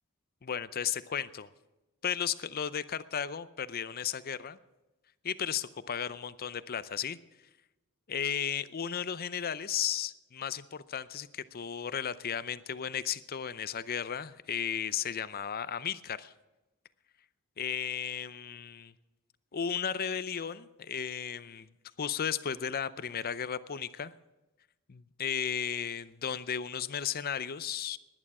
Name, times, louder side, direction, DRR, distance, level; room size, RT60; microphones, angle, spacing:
voice 1, 0.4-1.5 2.0-4.6 5.2-7.2 8.1-16.3 17.6-18.9 19.5-21.7 22.0-24.1 24.9-28.0, left 8 dB, 45° left, 15 dB, 0.6 m, -34 dB
18.5 x 11.0 x 4.8 m, 1.0 s
head